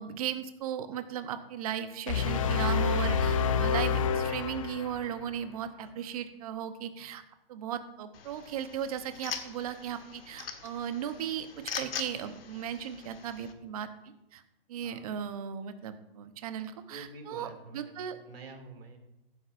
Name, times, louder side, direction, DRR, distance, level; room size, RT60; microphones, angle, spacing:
voice 1, 0.0-7.2 7.5-11.5 11.7-13.9 14.3-14.4 14.7-18.2, right 9 dB, 40° right, 10 dB, 0.9 m, -36 dB
sound 1, 2.1-5.3, left 6 dB, 35° left, 0.5 m, -28 dB
sound 2, 8.1-13.5, left 6 dB, 75° left, 1.3 m, -42 dB
voice 2, 16.9-19.0, right 3 dB, 80° right, 3 dB, 2.6 m, -48 dB
15.5 x 8.8 x 2.6 m, 0.94 s
hypercardioid pair, 150°, 29 cm